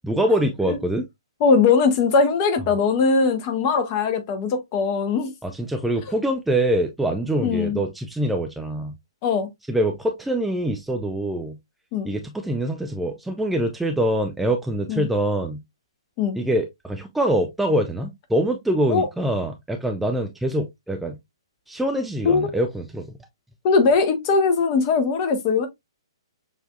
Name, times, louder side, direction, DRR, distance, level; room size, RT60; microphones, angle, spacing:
voice 1, 0.0-1.1 5.4-8.9 9.7-11.6 12.0-15.6 16.4-21.2 21.7-23.1, right 1 dB, 5° right, 0.4 m, -24 dB
voice 2, 1.4-5.3 6.1-6.2 7.4-7.8 9.2-9.5 11.9-12.1 14.9-15.1 16.2-16.4 18.9-19.1 22.2-22.6 23.6-25.7, left 5 dB, 30° left, 0.9 m, -20 dB
6.6 x 2.7 x 2.3 m
figure-of-eight pair, 120°, 3 cm